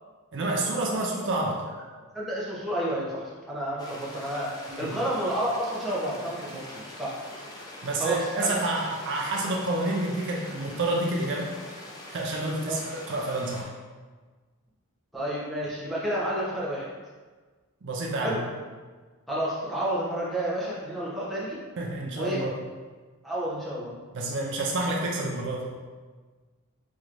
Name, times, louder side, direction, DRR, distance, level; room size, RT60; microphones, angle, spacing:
voice 1, 0.3-1.6 4.7-5.0 7.8-11.5 12.1-13.7 17.8-18.4 21.8-22.5 24.1-25.7, right 2 dB, 55° right, -1 dB, 0.5 m, -29 dB
voice 2, 2.1-7.2 8.0-8.5 12.6-12.8 15.1-16.9 18.2-18.4 19.3-21.6 22.2-22.4 23.2-23.9, right 1 dB, ahead, -8 dB, 0.9 m, -30 dB
sound 1, 3.8-13.6, left 1 dB, 20° left, 0.4 m, -43 dB
4.8 x 3.0 x 2.5 m, 1.4 s
head